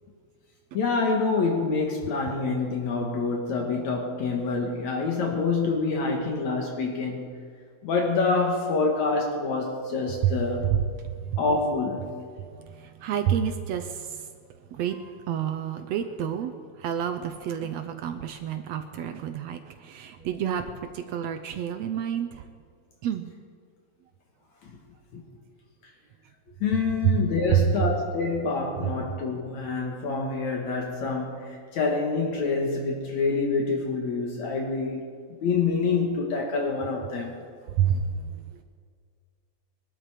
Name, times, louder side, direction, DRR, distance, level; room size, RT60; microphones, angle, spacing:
voice 1, 0.7-7.3 7.8-10.6 11.3-12.2 24.6-24.8 25.1-25.2 26.6-35.0 35.4-37.3, left 4 dB, 65° left, 1 dB, 2.8 m, -26 dB
voice 2, 11.0-11.4 12.6-14.3 14.7-15.0 15.3-22.4 23.0-23.3 27.0-27.2 27.5-27.7 37.6-38.6, right 9 dB, 70° right, 7 dB, 1.7 m, -29 dB
22.5 x 12.5 x 5.0 m, 2.1 s
omnidirectional pair, 3.5 m